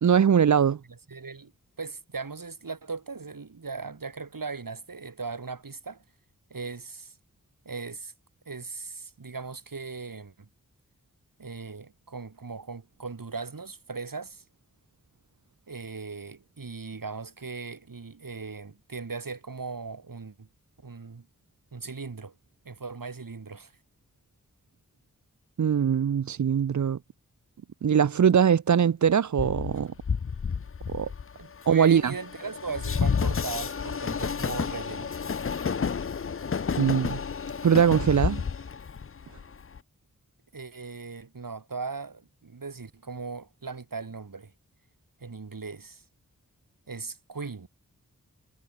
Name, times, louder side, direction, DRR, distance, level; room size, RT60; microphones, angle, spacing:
voice 1, 0.0-0.8 25.6-27.0 27.8-29.9 30.9-31.1 31.7-32.1 36.8-37.2 37.6-38.4, right 8 dB, 60° right, 0.6 m, -21 dB
voice 2, 0.9-1.5 1.8-6.0 6.5-7.2 7.6-8.1 8.4-10.5 11.4-14.4 15.7-20.5 20.8-21.3 21.7-22.3 22.6-23.7 31.4-35.1 40.5-44.5 45.2-46.0 46.9-47.7, right 4 dB, 75° right, 5.0 m, -38 dB
Train, 29.4-39.8, left 6 dB, 40° left, 0.6 m, -30 dB
cardioid pair, 40°, 34 cm